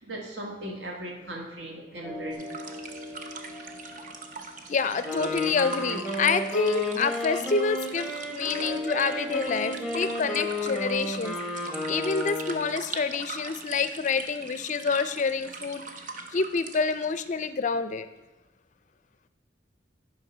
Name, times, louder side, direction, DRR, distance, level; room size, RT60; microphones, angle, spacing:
voice 1, 0.0-2.7, right 1 dB, 70° right, 0 dB, 1.7 m, -38 dB
sound 1, 2.0-11.2, equal, 20° right, 3.0 m, -42 dB
sound 2, 2.3-17.3, right 4 dB, 45° right, 0.8 m, -41 dB
voice 2, 4.7-11.4 11.9-15.8 16.3-18.1, left 5 dB, 40° left, 12 dB, 0.4 m, -27 dB
Wind instrument woodwind instrument, 4.9-12.8, left 1 dB, 5° right, 1.1 m, -32 dB
10.5 x 5.0 x 6.1 m, 1.0 s
head